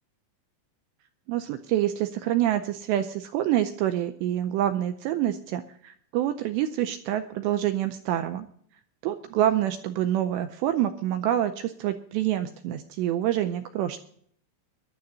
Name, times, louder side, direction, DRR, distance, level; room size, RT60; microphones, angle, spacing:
voice 1, 1.3-8.5 9.0-14.0, right 12 dB, 80° right, 9 dB, 2.5 m, -27 dB
22.5 x 11.5 x 2.7 m, 0.63 s
omnidirectional pair, 5.6 m